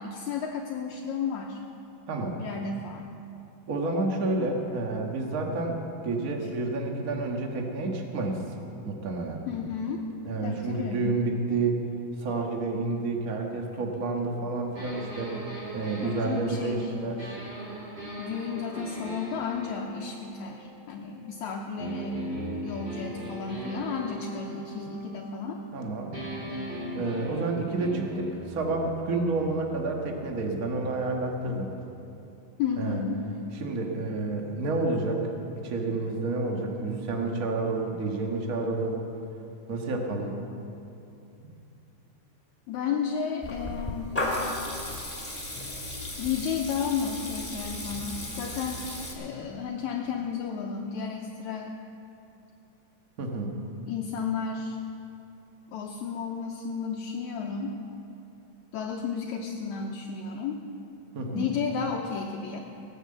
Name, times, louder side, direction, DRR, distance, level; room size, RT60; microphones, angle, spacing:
voice 1, 0.0-1.6 2.4-3.1 9.5-10.0 10.4-11.1 16.0-16.9 18.2-22.3 22.6-25.6 32.6-33.2 42.7-44.2 46.2-48.8 49.2-51.7 53.9-54.8 55.7-57.8 58.7-60.7 61.3-62.6, left 6 dB, 75° left, 0 dB, 1.8 m, -32 dB
voice 2, 3.7-5.8 6.0-8.4 8.8-9.4 10.2-11.8 12.2-15.3 15.7-17.3 24.7-25.0 25.7-26.2 26.9-31.7 32.8-33.0 33.6-35.2 35.6-39.0 39.7-40.4 53.2-53.5 61.1-61.5, right 3 dB, 85° right, 1 dB, 0.7 m, -29 dB
sound 1, 14.8-21.3 21.8-25.8 26.1-31.9, right 1 dB, 55° right, 6.4 m, -40 dB
Water tap faucet / Liquid, 43.4-49.1, left 1 dB, 5° left, 1.7 m, -34 dB
17.5 x 9.9 x 7.7 m, 2.7 s
omnidirectional pair, 4.1 m